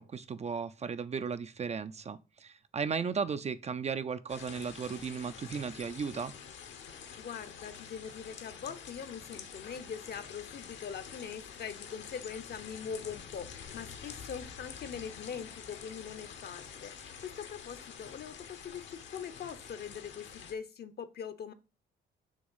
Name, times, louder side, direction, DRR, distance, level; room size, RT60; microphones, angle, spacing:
voice 1, 0.0-6.3, right 6 dB, 35° right, 0.5 m, -35 dB
sound 1, 4.3-20.5, left 7 dB, 70° left, 1.2 m, -47 dB
voice 2, 6.9-21.5, left 7 dB, 55° left, 0.9 m, -42 dB
6.3 x 3.5 x 5.6 m
cardioid pair, 90°, 20 cm